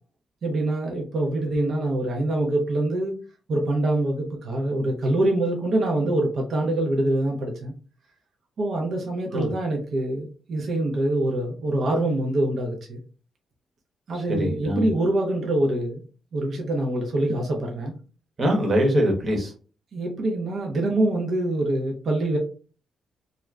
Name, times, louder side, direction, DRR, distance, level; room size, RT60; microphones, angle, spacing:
voice 1, 0.4-3.2 3.5-7.7 8.6-13.0 14.1-16.0 16.3-17.9 19.9-22.4, right 1 dB, 60° right, 1 dB, 0.6 m, -25 dB
voice 2, 14.1-14.9 18.4-19.5, equal, 45° right, 2 dB, 1.0 m, -23 dB
2.4 x 2.1 x 3.2 m, 0.38 s
cardioid pair, 80°, 0 cm